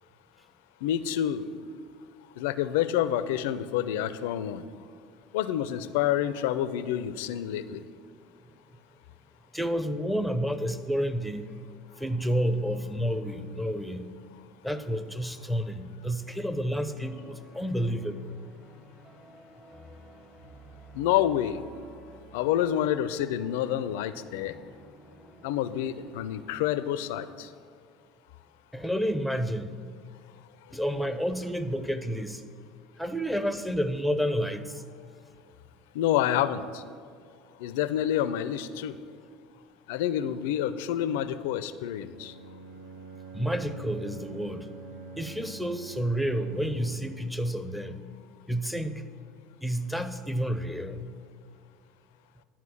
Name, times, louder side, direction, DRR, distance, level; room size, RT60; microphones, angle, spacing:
voice 1, 0.8-1.5 2.4-4.6 5.3-7.8 20.9-21.6 22.3-24.5 25.4-27.5 35.9-36.8 37.6-38.9 39.9-42.3, left 11 dB, 70° left, 13 dB, 0.4 m, -28 dB
voice 2, 9.5-14.2 14.6-18.3 28.7-29.8 30.7-32.4 33.0-34.8 43.3-44.7 45.1-48.0 48.5-49.0 49.6-51.2, equal, ahead, 10 dB, 0.6 m, -30 dB
sound 1, 16.8-26.9, right 2 dB, 30° right, 1.6 m, -53 dB
Bowed string instrument, 42.1-47.2, right 3 dB, 80° right, 0.7 m, -45 dB
10.0 x 4.5 x 7.2 m, 2.2 s
hypercardioid pair, 70°, 0 cm